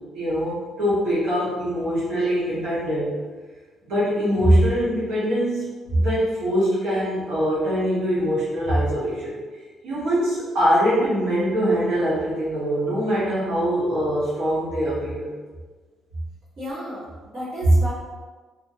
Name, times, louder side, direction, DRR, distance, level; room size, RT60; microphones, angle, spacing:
voice 1, 0.1-3.1 3.8-9.3 9.8-15.3, equal, 80° right, -10 dB, 1.1 m, -23 dB
voice 2, 16.6-17.9, equal, 45° right, -11 dB, 1.4 m, -33 dB
2.7 x 2.5 x 2.7 m, 1.3 s
cardioid pair, 170°, 0 cm